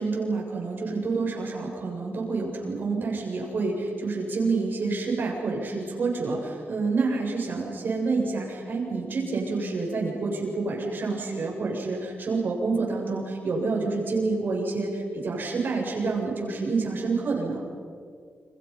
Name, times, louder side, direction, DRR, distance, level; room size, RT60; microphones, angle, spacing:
voice 1, 0.0-17.6, right 3 dB, 55° right, -2 dB, 7.6 m, -28 dB
29.5 x 28.5 x 5.8 m, 2.2 s
wide cardioid pair, 125°, 4 cm